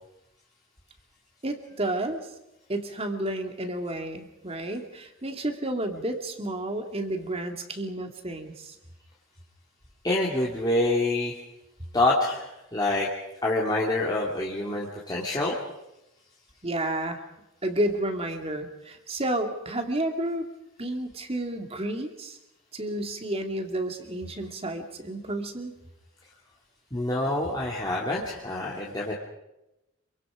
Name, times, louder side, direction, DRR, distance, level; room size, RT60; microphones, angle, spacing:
voice 1, 1.4-2.2 2.7-8.8 16.6-17.2 17.6-20.5 20.8-22.4 22.7-25.7, right 1 dB, 30° right, 4 dB, 2.5 m, -31 dB
voice 2, 10.0-11.4 11.9-13.1 13.4-15.6 26.9-29.1, left 2 dB, 20° left, -4 dB, 2.6 m, -26 dB
27.0 x 24.5 x 5.1 m, 0.92 s
head